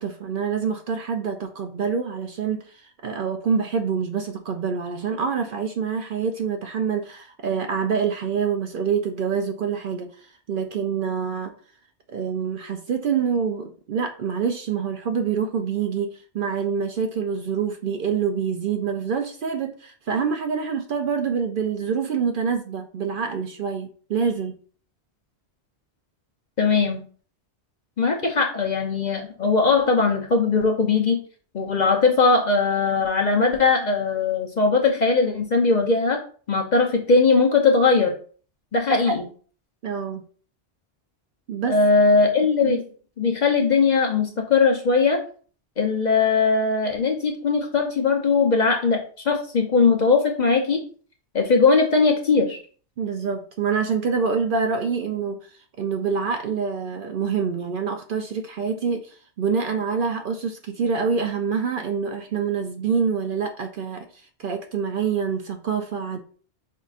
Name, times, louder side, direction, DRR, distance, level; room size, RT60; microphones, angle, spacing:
voice 1, 0.0-11.5 12.1-24.5 38.9-39.2 39.8-40.2 41.5-41.8 42.6-42.8 53.0-66.2, right 6 dB, 60° right, 5 dB, 0.6 m, -26 dB
voice 2, 26.6-27.0 28.0-31.2 31.5-36.2 36.5-38.1 38.7-39.2 41.7-42.8 43.2-45.2 45.8-49.0 49.3-50.8 51.3-52.6, left 4 dB, 45° left, 3 dB, 0.7 m, -20 dB
5.4 x 3.7 x 2.4 m, 0.43 s
omnidirectional pair, 1.2 m